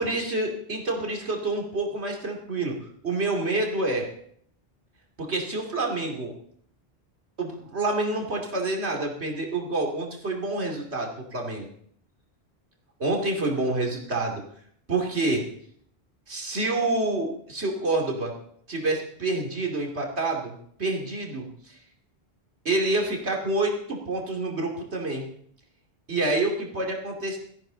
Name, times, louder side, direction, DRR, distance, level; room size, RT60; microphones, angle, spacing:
voice 1, 0.0-2.8 3.0-4.1 5.2-6.3 7.4-11.7 13.0-14.4 14.9-15.4 16.3-18.3 18.7-21.8 22.6-25.2 26.1-27.4, right 2 dB, 80° right, 1 dB, 2.9 m, -27 dB
17.0 x 14.0 x 3.9 m, 0.66 s
omnidirectional pair, 1.1 m